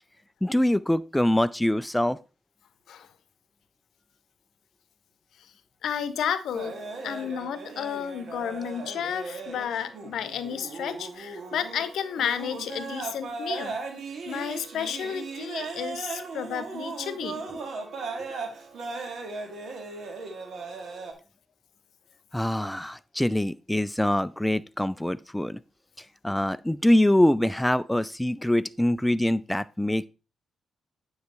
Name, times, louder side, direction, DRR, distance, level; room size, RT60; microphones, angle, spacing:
voice 1, 0.4-2.2 22.3-25.6 26.2-30.0, left 1 dB, 10° left, 0.4 m, -24 dB
voice 2, 5.8-13.8 14.2-17.4, left 8 dB, 70° left, 0.8 m, -32 dB
sound 1, 6.5-21.1, right 4 dB, 60° right, 1.9 m, -37 dB
9.4 x 4.9 x 4.2 m
hypercardioid pair, 40°, 0 cm